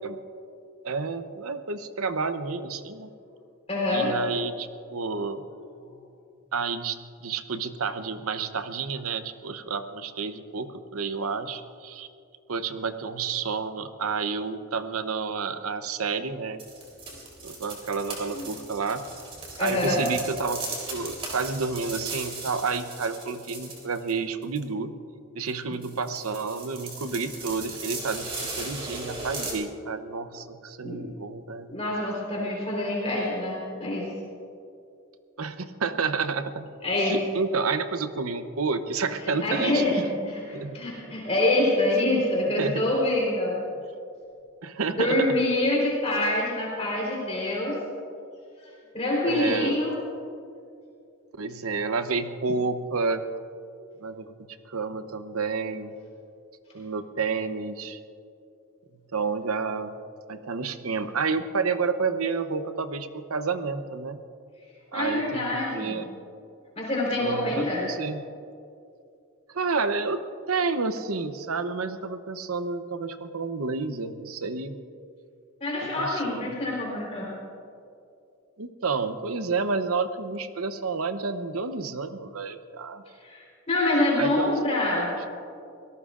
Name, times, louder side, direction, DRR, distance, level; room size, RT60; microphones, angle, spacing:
voice 1, 0.8-3.1 3.9-5.5 6.5-7.0 7.2-12.1 12.5-16.6 17.4-19.0 19.6-20.6 20.9-24.9 25.3-31.8 35.4-36.6 37.0-39.8 40.5-40.8 41.1-41.2 42.6-42.9 44.6-45.4 49.2-49.8 51.4-53.2 54.0-54.3 54.7-55.9 56.7-58.0 59.1-59.9 60.3-64.2 64.9-66.1 67.2-68.2 69.5-74.8 76.0-76.6 78.6-83.0 84.2-84.5, right 4 dB, 90° right, 9 dB, 0.8 m, -30 dB
voice 2, 3.7-4.1 5.9-6.0 18.3-18.4 19.6-20.0 30.8-31.1 31.7-34.1 36.8-37.2 39.4-39.9 40.3-43.6 44.9-47.8 48.6-48.7 48.9-49.9 64.9-66.0 66.8-67.8 75.6-77.3 83.2-85.1, left 1 dB, 30° left, -4 dB, 4.0 m, -26 dB
sound 1, 16.6-24.1 24.4-24.6 25.5-25.6 25.8-29.5, right 3 dB, 25° right, 3.6 m, -37 dB
25.0 x 18.0 x 2.5 m, 2.5 s
head